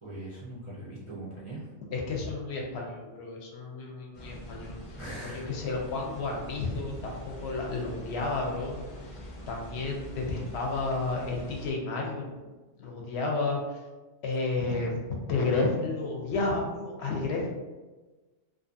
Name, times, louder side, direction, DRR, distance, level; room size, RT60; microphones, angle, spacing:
voice 1, 0.0-1.7 5.0-5.5, right 1 dB, 45° right, -8 dB, 0.4 m, -41 dB
voice 2, 1.9-12.5 12.8-13.8 14.2-17.5, left 3 dB, 70° left, -1 dB, 0.8 m, -32 dB
sound 1, 4.1-11.7, equal, 40° left, 0.5 m, -44 dB
2.5 x 2.4 x 2.5 m, 1.2 s
omnidirectional pair, 1.2 m